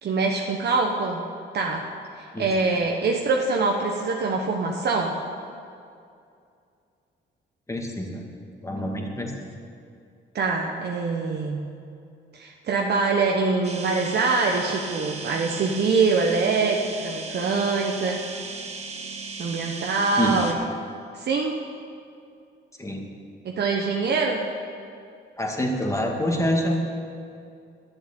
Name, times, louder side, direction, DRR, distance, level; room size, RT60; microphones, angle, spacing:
voice 1, 0.0-1.2 1.5-1.8 2.4-5.2 10.3-11.6 12.3-18.2 19.4-20.6 21.1-21.6 23.4-24.4, right 4 dB, 55° right, 0 dB, 1.1 m, -24 dB
voice 2, 7.7-8.3 8.6-9.5 20.2-20.4 22.8-23.1 25.4-26.8, equal, 15° left, 1 dB, 2.2 m, -26 dB
sound 1, 13.6-20.5, right 4 dB, 35° right, 1.5 m, -36 dB
11.5 x 7.6 x 9.0 m, 2.4 s
cardioid pair, 90°, 20 cm